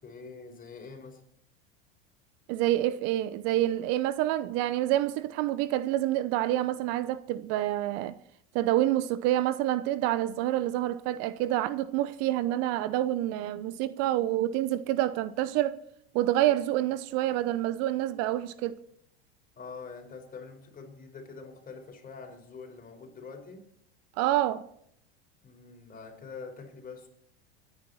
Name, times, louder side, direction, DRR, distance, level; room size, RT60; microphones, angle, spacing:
voice 1, 0.0-1.2 19.6-23.7 25.4-27.1, left 4 dB, 25° left, 4.9 m, -45 dB
voice 2, 2.5-8.1 8.5-15.8 16.1-18.8 24.2-24.7, right 14 dB, 50° right, 0.8 m, -27 dB
26.0 x 9.9 x 4.3 m
hypercardioid pair, 90°, 32 cm